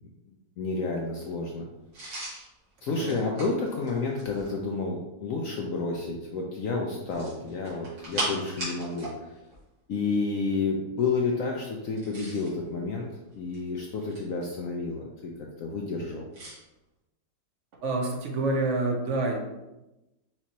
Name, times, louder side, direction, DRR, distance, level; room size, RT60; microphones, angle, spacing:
voice 1, 0.3-1.7 2.8-9.4 9.9-13.1 13.3-16.3, left 4 dB, 75° left, 0 dB, 0.7 m, -30 dB
sound 1, 1.9-4.6 7.0-9.2 9.4-9.6 11.8-12.6 13.3-14.4 16.3-16.6, right 2 dB, 85° right, 2.6 m, -37 dB
voice 2, 17.8-19.4, right 2 dB, 55° right, 1 dB, 0.9 m, -27 dB
5.9 x 3.0 x 2.8 m, 0.99 s
omnidirectional pair, 1.9 m